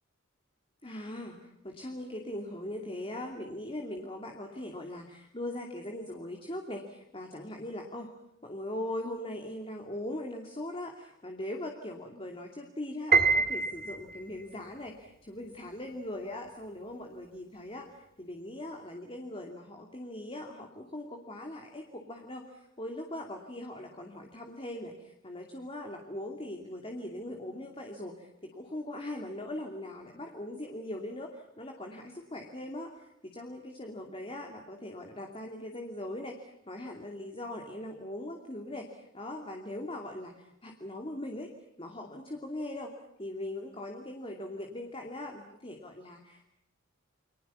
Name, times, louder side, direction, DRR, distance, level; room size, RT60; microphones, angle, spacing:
voice 1, 0.8-8.1 8.4-41.5 41.8-42.9 43.2-46.5, left 1 dB, 25° left, 3 dB, 2.6 m, -40 dB
Piano, 13.1-14.4, right 4 dB, 45° right, 2.0 m, -25 dB
30.0 x 24.5 x 7.1 m, 0.79 s
head